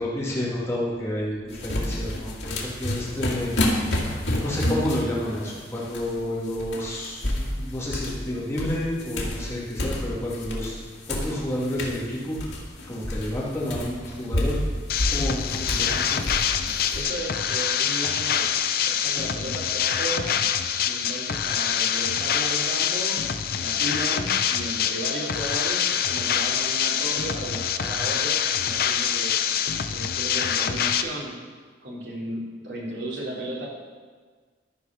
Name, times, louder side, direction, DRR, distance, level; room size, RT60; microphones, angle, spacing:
voice 1, 0.0-4.1 4.4-10.7 11.1-12.6 12.9-14.6 15.1-16.2 28.0-28.1, left 1 dB, 15° left, -7 dB, 2.4 m, -30 dB
sound 1, 1.5-6.2 6.5-8.3 8.6-10.8 11.0-17.0, left 1 dB, 90° left, 1.8 m, -29 dB
sound 2, 14.9-31.0, left 8 dB, 55° left, 0.5 m, -25 dB
voice 2, 15.7-16.1 16.9-18.5 18.8-20.5 20.8-23.1 23.6-29.4 29.9-31.4 31.8-33.7, right 1 dB, 65° right, -4 dB, 2.7 m, -34 dB
12.5 x 4.9 x 5.9 m, 1.5 s
head